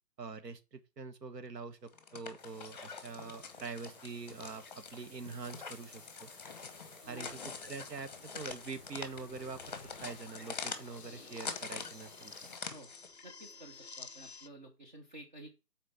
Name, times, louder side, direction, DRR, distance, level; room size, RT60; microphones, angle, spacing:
voice 1, 0.2-6.3 7.1-12.3, right 4 dB, 75° right, 1.3 m, -45 dB
sound 1, 1.9-13.2, left 5 dB, 25° left, 1.0 m, -45 dB
sound 2, 2.4-12.6, left 2 dB, 5° right, 2.2 m, -58 dB
voice 2, 7.0-7.4 12.7-12.9 13.2-15.5, right 2 dB, 30° right, 0.8 m, -51 dB
sound 3, 7.1-14.5, left 4 dB, 45° left, 0.5 m, -54 dB
6.4 x 4.4 x 5.7 m
hypercardioid pair, 165°, 49 cm